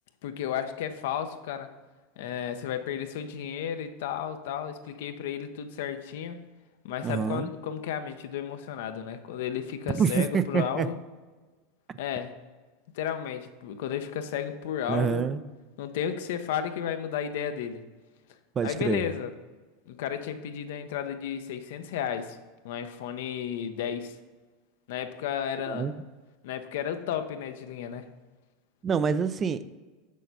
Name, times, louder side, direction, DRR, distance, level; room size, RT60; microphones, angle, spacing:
voice 1, 0.2-1.7 2.2-6.5 6.8-11.0 12.0-12.4 12.9-15.3 15.8-17.8 18.6-19.3 19.9-22.4 22.6-24.2 24.9-25.9 26.4-28.1, left 9 dB, 70° left, 9 dB, 0.6 m, -33 dB
voice 2, 7.0-7.5 9.9-10.9 14.9-15.4 18.6-19.0 25.7-26.0 28.8-29.6, right 6 dB, 30° right, 13 dB, 0.4 m, -26 dB
6.5 x 6.4 x 4.1 m, 1.3 s
hypercardioid pair, 85°, 0 cm